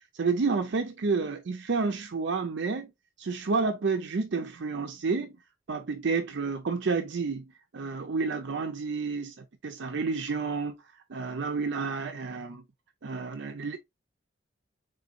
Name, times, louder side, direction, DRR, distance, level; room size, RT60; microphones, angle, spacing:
voice 1, 0.1-2.9 3.2-5.3 5.7-7.4 7.7-9.3 9.6-10.7 11.1-12.6 13.0-13.8, right 4 dB, 65° right, 0.5 m, -30 dB
3.9 x 3.8 x 2.5 m
head